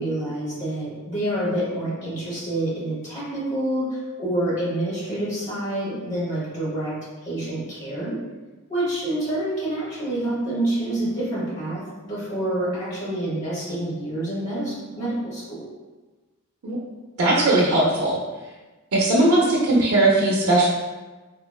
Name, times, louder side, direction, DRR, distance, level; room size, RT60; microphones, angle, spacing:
voice 1, 0.0-6.9 7.2-8.1 8.7-15.6, right 1 dB, 35° left, -8 dB, 1.1 m, -27 dB
voice 2, 17.2-18.2 18.9-20.7, right 2 dB, 85° right, -6 dB, 0.5 m, -19 dB
3.7 x 2.1 x 2.3 m, 1.2 s
head